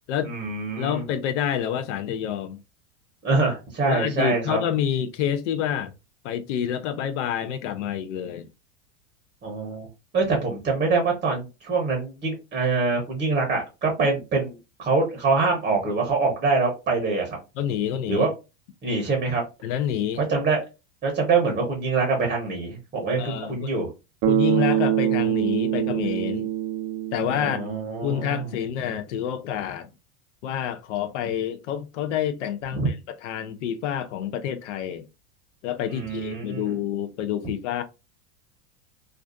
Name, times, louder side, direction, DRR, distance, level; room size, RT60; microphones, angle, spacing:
voice 1, 0.2-1.0 3.2-4.6 9.4-9.9 10.1-17.4 18.0-18.3 18.8-19.4 20.3-20.6 21.0-23.9 27.4-28.5 32.7-32.9 35.9-36.8, right 4 dB, 20° right, 0.8 m, -24 dB
voice 2, 0.8-2.6 3.9-5.9 6.2-8.5 17.6-18.3 19.6-20.2 23.2-23.7 24.3-26.5 27.1-27.6 28.0-29.9 30.4-35.1 35.6-37.8, left 9 dB, 80° left, 0.5 m, -28 dB
Bass guitar, 24.2-28.2, right 12 dB, 40° right, 0.4 m, -24 dB
2.4 x 2.3 x 2.4 m
supercardioid pair, 120°, 36 cm